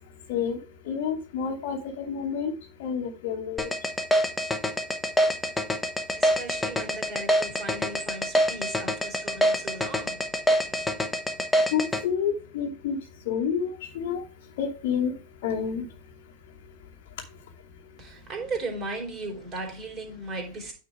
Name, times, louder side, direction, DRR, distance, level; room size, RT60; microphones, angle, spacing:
voice 1, 0.9-2.5 2.8-3.7 11.7-13.0 13.3-14.2 14.6-15.1 15.4-15.9, left 7 dB, 50° left, 1.1 m, -29 dB
sound 1, 3.6-12.0, equal, 10° left, 0.9 m, -24 dB
voice 2, 6.1-10.9 18.0-20.7, right 2 dB, 30° right, 3.0 m, -37 dB
9.2 x 3.9 x 4.7 m
figure-of-eight pair, 90°, 0 cm